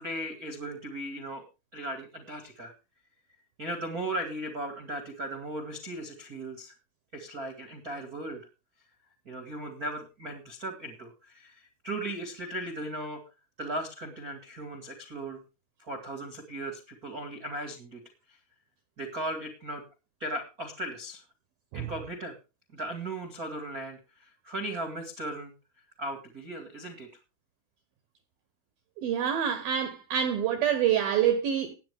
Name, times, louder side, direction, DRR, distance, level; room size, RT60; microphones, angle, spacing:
voice 1, 0.0-1.4 1.7-2.7 3.6-6.7 7.1-8.4 9.2-13.2 13.6-15.4 15.9-18.0 19.0-19.8 20.2-21.2 21.7-22.3 22.7-25.5 26.0-27.1, right 1 dB, 65° right, 0.8 m, -37 dB
voice 2, 29.0-31.7, right 9 dB, 90° right, 2.0 m, -26 dB
18.0 x 8.8 x 3.5 m
omnidirectional pair, 5.6 m